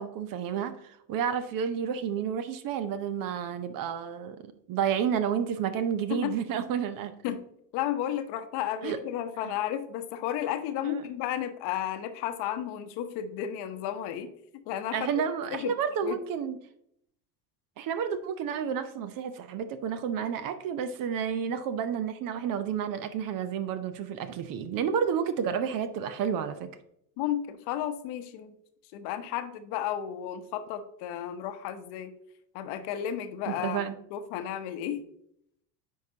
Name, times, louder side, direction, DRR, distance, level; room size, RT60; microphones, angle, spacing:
voice 1, 0.0-7.1 8.8-9.0 9.4-9.5 10.8-11.1 14.9-16.6 17.8-26.7 33.5-34.0, right 8 dB, 45° right, 11 dB, 0.7 m, -31 dB
voice 2, 7.7-14.3 14.7-15.1 15.5-15.7 16.0-16.2 27.2-28.5 28.9-32.1 32.5-33.8 34.1-35.1, left 10 dB, 55° left, 9 dB, 0.9 m, -33 dB
9.2 x 4.7 x 2.8 m, 0.73 s
hypercardioid pair, 75°, 50 cm